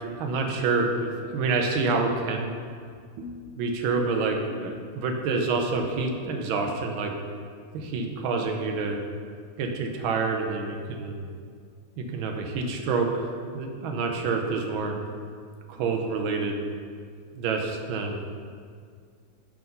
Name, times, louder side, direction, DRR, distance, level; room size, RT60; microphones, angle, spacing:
voice 1, 0.0-2.5 3.2-7.1 7.7-9.0 9.6-11.3 12.0-14.9 15.7-16.6 17.3-18.2, right 4 dB, 75° right, 2 dB, 1.5 m, -28 dB
5.9 x 4.5 x 5.3 m, 2.1 s
omnidirectional pair, 2.3 m